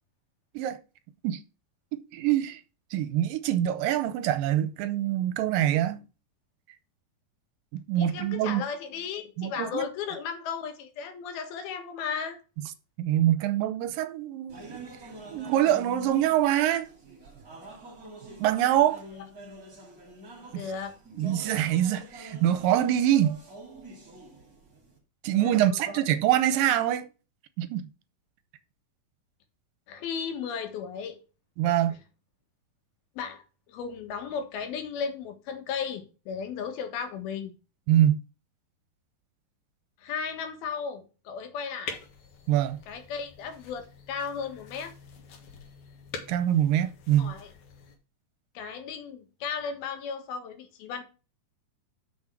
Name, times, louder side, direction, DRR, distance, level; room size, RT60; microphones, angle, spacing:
voice 1, 1.9-2.6 2.9-6.0 7.7-8.6 9.4-9.9 13.0-14.8 15.3-16.9 18.4-19.0 20.5-20.6 21.2-23.4 25.2-27.1 27.6-27.8 31.6-31.9 37.9-38.2 42.5-42.8 46.3-47.3, right 12 dB, 80° right, 2.3 m, -24 dB
voice 2, 8.0-12.4 20.5-21.0 25.3-26.0 29.9-31.2 33.2-37.5 40.0-42.0 42.9-44.9 47.2-47.5 48.5-51.0, left 6 dB, 85° left, 3.3 m, -35 dB
sound 1, 14.5-25.0, right 1 dB, 25° right, 2.5 m, -46 dB
sound 2, 41.9-48.0, left 5 dB, 60° left, 2.6 m, -45 dB
6.3 x 6.2 x 5.9 m
omnidirectional pair, 4.2 m